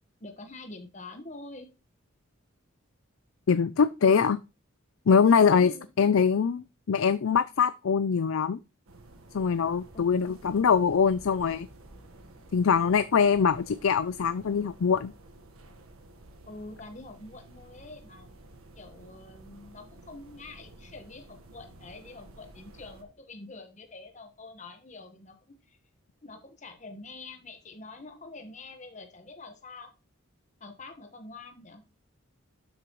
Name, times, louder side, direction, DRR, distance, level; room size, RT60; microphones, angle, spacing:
voice 1, 0.2-1.7 5.5-5.9 9.9-10.4 16.5-18.3 18.7-25.8 26.2-29.9 30.6-31.8, left 2 dB, 35° left, 1.3 m, -46 dB
voice 2, 3.5-4.4 5.1-5.7 6.0-8.6 9.3-11.7 12.5-15.1, left 6 dB, 75° left, 0.4 m, -23 dB
sound 1, 8.9-23.0, right 1 dB, 85° right, 1.4 m, -52 dB
12.0 x 6.5 x 3.1 m
head